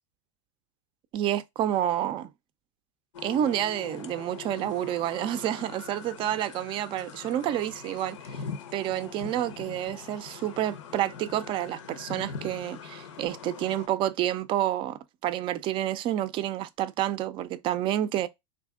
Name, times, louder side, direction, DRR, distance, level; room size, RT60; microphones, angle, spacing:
voice 1, 1.1-2.3 3.2-8.4 8.7-14.9 15.2-18.3, right 12 dB, 35° right, 0.4 m, -29 dB
sound 1, 3.1-13.9, left 6 dB, 85° left, 0.7 m, -42 dB
3.5 x 2.7 x 3.5 m
supercardioid pair, 130°, 16 cm